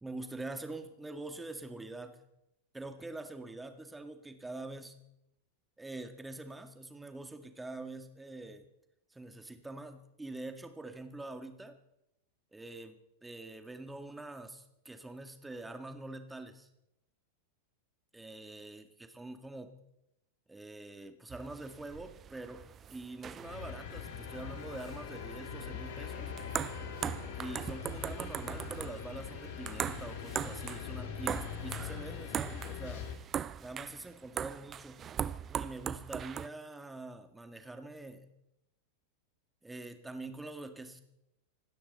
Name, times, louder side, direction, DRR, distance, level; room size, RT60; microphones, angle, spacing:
voice 1, 0.0-2.2 2.7-5.0 5.8-8.7 9.1-11.8 12.5-16.7 18.1-19.8 20.5-26.3 27.3-33.1 33.6-35.1 35.5-38.3 39.6-41.0, right 2 dB, 10° right, 7 dB, 1.9 m, -45 dB
sound 1, 21.3-36.5, right 9 dB, 25° right, 0.6 m, -40 dB
sound 2, 23.4-33.2, left 7 dB, 50° left, 2.5 m, -42 dB
26.0 x 12.5 x 4.1 m, 0.85 s
figure-of-eight pair, 90°, 0 cm